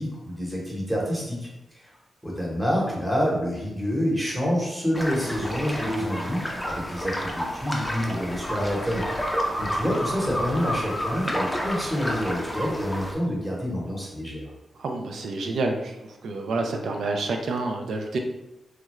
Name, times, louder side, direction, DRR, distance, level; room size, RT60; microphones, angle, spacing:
voice 1, 0.0-1.5 1.7-1.9 2.2-9.0 9.6-14.5, equal, 10° right, -4 dB, 1.0 m, -27 dB
sound 1, 4.9-13.1, equal, 5° left, 0.5 m, -30 dB
voice 2, 14.8-18.2, right 3 dB, 85° right, 3 dB, 0.3 m, -28 dB
3.1 x 2.3 x 3.0 m, 0.95 s
wide cardioid pair, 130°, 0 cm